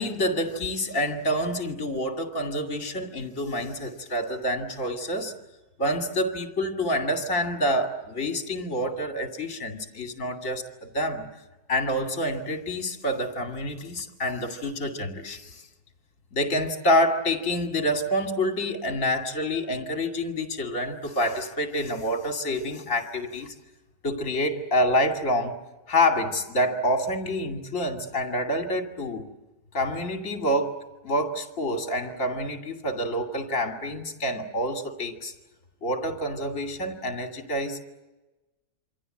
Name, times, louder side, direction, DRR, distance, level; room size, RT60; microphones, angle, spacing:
voice 1, 0.0-5.3 5.8-11.3 11.7-15.7 16.3-23.5 24.0-25.6 25.9-29.2 29.7-35.3 35.8-37.8, equal, 45° left, 3.0 m, -27 dB
27.5 x 25.5 x 7.9 m
omnidirectional pair, 1.9 m